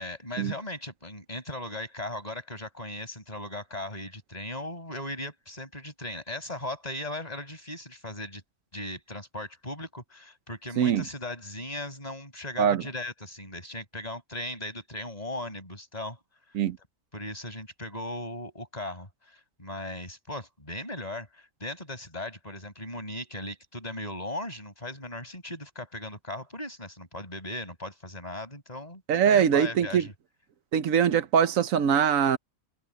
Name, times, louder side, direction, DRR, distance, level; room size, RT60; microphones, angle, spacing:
voice 1, 0.0-8.4 8.7-16.2 17.1-30.1, left 1 dB, 30° left, 6.0 m, -38 dB
voice 2, 29.1-30.1 30.7-32.4, right 8 dB, 85° right, 1.2 m, -22 dB
omnidirectional pair, 1.4 m